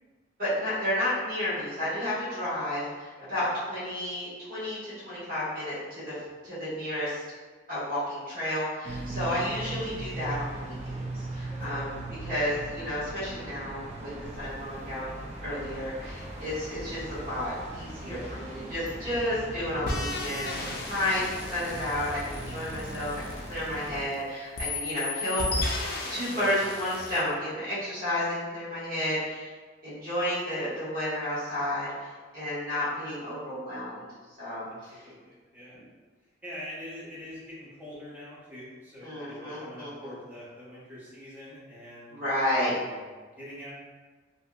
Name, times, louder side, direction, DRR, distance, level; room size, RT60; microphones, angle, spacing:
voice 1, 0.4-6.1 6.4-7.2 7.7-10.7 11.1-14.1 14.4-23.1 23.5-25.5 26.1-29.5 29.8-32.1 32.3-34.1 34.4-35.0 39.0-40.1 42.1-42.7, left 1 dB, 50° right, -11 dB, 1.4 m, -31 dB
voice 2, 3.2-3.5 9.1-9.3 11.5-11.9 18.0-18.4 34.7-35.8 36.4-42.2 42.8-43.7, left 1 dB, 10° right, -8 dB, 0.7 m, -45 dB
sound 1, 8.8-24.1, right 1 dB, 35° right, 0.4 m, -39 dB
sound 2, 19.9-24.1 24.6-27.3, left 2 dB, 55° left, 0.4 m, -34 dB
2.7 x 2.7 x 2.3 m, 1.4 s
head